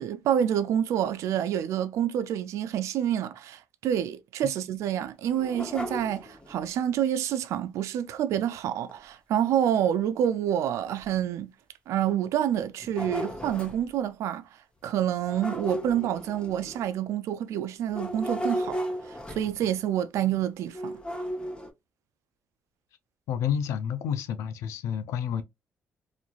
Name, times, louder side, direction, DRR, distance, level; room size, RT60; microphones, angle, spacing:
voice 1, 0.0-11.5 11.9-14.4 14.8-18.8 19.1-21.0, right 10 dB, 80° right, 0.3 m, -28 dB
sound 1, 5.2-6.7 8.9-9.0 9.5-9.6 10.3-10.4 11.0-11.1 12.5-13.9 15.2-17.0 17.9-19.8 20.7-21.7, equal, 20° left, 0.8 m, -35 dB
voice 2, 23.3-25.4, left 8 dB, 85° left, 0.4 m, -29 dB
3.0 x 2.3 x 2.3 m
cardioid pair, 80°, 5 cm